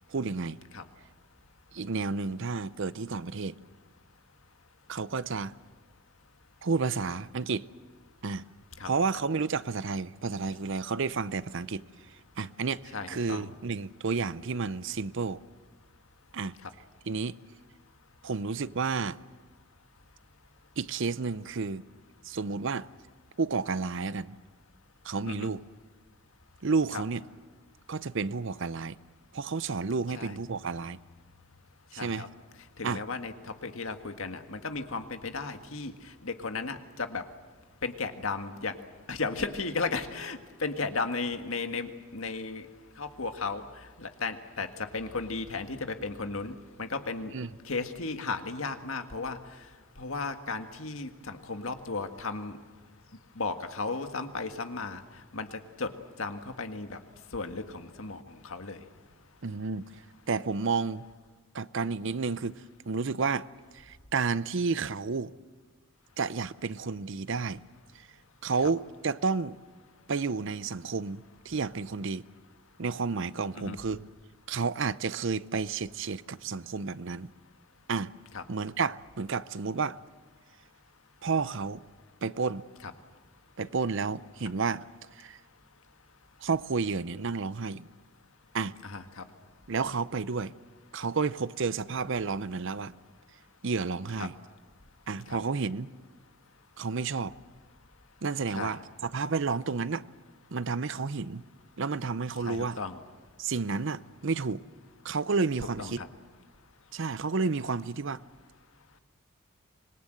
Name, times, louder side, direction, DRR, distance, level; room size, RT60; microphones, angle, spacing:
voice 1, 0.1-0.6 1.7-3.6 4.9-5.5 6.6-7.7 8.2-8.4 8.8-15.4 16.3-16.6 17.1-17.4 18.2-19.2 20.8-21.8 22.2-22.9 23.4-24.4 25.0-25.6 26.6-27.2 27.9-29.0 29.3-31.0 31.9-32.3 32.8-33.0 47.3-47.5 59.4-61.1 61.5-63.5 63.7-65.3 66.2-67.6 67.9-68.1 68.4-69.6 70.1-72.2 72.8-74.0 74.5-77.3 77.9-78.1 78.5-80.0 81.2-81.8 82.2-82.6 83.6-85.4 86.4-87.9 88.5-88.8 89.7-90.5 90.9-92.9 93.6-94.3 95.1-95.9 96.8-97.3 98.2-100.1 100.5-101.4 101.8-102.8 103.4-104.6 105.0-106.0 106.9-108.2, right 4 dB, 60° right, 0.6 m, -31 dB
voice 2, 12.9-13.5 16.6-16.7 25.3-25.5 26.9-27.0 30.1-30.3 32.0-32.3 32.8-33.3 33.6-35.9 36.2-37.2 37.8-38.7 39.1-42.6 43.0-43.6 44.0-47.3 47.6-49.4 50.0-52.6 53.3-55.0 55.3-55.9 56.2-57.0 57.3-58.8 73.5-73.8 78.3-78.4 82.8-82.9 88.8-89.2 94.2-94.3 95.3-95.4 98.5-98.8 102.4-103.0 105.8-106.1, left 4 dB, 75° left, 1.8 m, -35 dB
25.5 x 21.5 x 7.9 m
head